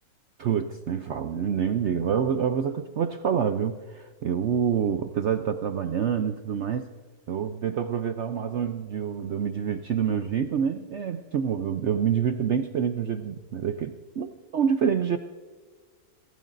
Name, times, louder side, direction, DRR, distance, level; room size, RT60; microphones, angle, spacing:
voice 1, 0.4-6.9 7.3-15.2, right 7 dB, 75° right, 8 dB, 0.6 m, -27 dB
25.0 x 16.0 x 2.6 m, 1.4 s
omnidirectional pair, 1.9 m